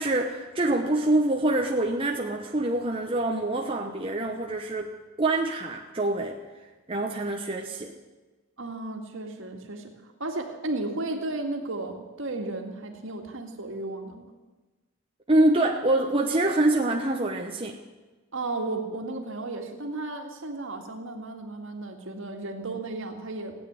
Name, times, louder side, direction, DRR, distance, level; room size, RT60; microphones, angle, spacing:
voice 1, 0.0-4.9 5.2-6.4 6.9-7.9 15.3-17.8, right 2 dB, 25° right, 1 dB, 0.9 m, -25 dB
voice 2, 8.6-9.9 10.2-14.3 18.3-23.6, right 2 dB, 60° right, 4 dB, 2.1 m, -34 dB
16.5 x 9.1 x 9.7 m, 1.2 s
head